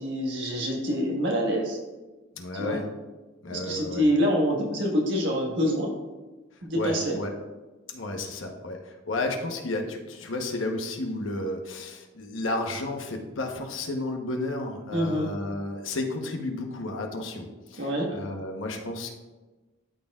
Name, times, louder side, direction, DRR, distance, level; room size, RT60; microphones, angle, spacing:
voice 1, 0.0-1.8 2.5-2.8 3.5-5.9 6.6-7.2 14.9-15.3 17.8-18.2, equal, 65° right, 0 dB, 1.5 m, -26 dB
voice 2, 2.3-2.9 3.4-4.1 6.7-7.3 7.9-19.1, left 2 dB, 90° left, 3 dB, 1.0 m, -32 dB
12.5 x 4.4 x 2.4 m, 1.2 s
head